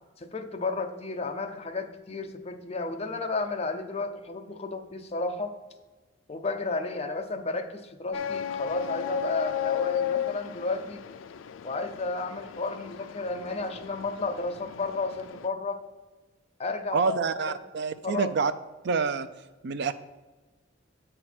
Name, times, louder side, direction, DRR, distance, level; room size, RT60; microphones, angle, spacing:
voice 1, 0.2-5.5 6.3-11.0 11.6-15.8 16.6-17.6 18.0-18.3, left 3 dB, 35° left, 5 dB, 0.7 m, -32 dB
sound 1, 8.1-15.5, left 9 dB, 75° left, 0.4 m, -35 dB
voice 2, 16.9-18.5 18.8-19.3 19.6-19.9, right 5 dB, 60° right, 12 dB, 0.5 m, -27 dB
7.9 x 4.5 x 5.9 m, 1.2 s
head